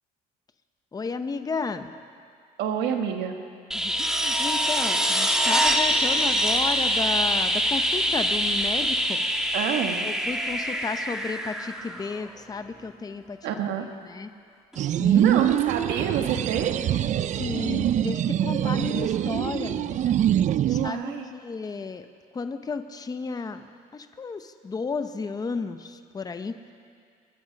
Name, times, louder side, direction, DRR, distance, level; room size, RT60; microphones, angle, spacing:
voice 1, 0.9-1.9 3.7-9.2 10.0-13.4 14.1-14.3 15.0-15.4 17.3-20.1 20.7-22.1 22.3-23.7 23.9-26.6, left 4 dB, 20° left, 9 dB, 0.8 m, -33 dB
voice 2, 2.6-3.4 9.5-10.0 13.4-13.9 15.1-16.7 20.7-21.3, right 8 dB, 85° right, 4 dB, 1.6 m, -28 dB
sound 1, 3.7-12.4 14.7-14.8, equal, 5° right, 1.3 m, -24 dB
sound 2, 14.8-20.9, right 11 dB, 45° right, 0.4 m, -24 dB
23.0 x 11.5 x 5.3 m, 2.2 s
cardioid pair, 110°, 17 cm